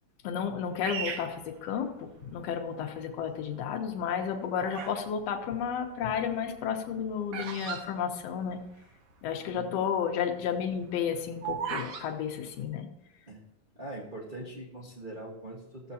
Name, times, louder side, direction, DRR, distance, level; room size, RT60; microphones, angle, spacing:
voice 1, 0.2-8.6 9.2-12.9, left 7 dB, 65° left, 4 dB, 1.9 m, -32 dB
Bird vocalization bird call bird song, 0.8-2.3 2.9-3.4 4.1-5.1 5.3-8.8 9.1-9.2 9.4-9.7 10.2-12.1, right 7 dB, 90° right, 1.0 m, -38 dB
voice 2, 9.5-9.9 13.3-13.4 13.7-15.9, right 1 dB, 55° right, -5 dB, 0.5 m, -42 dB
15.0 x 7.3 x 2.8 m, 0.92 s
omnidirectional pair, 3.4 m